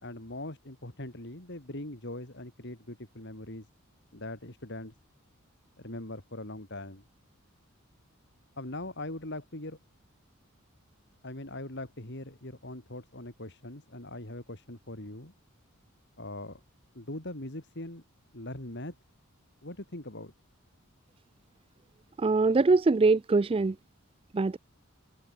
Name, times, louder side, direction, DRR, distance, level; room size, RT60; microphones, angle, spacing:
voice 1, 0.0-3.7 4.1-4.9 5.8-7.0 8.6-9.8 11.2-15.3 16.2-16.6 17.0-18.0 18.3-19.0 19.6-20.3, left 1 dB, 55° left, 3.6 m, -41 dB
voice 2, 22.2-23.8 24.3-24.6, right 3 dB, 25° right, 0.3 m, -23 dB
head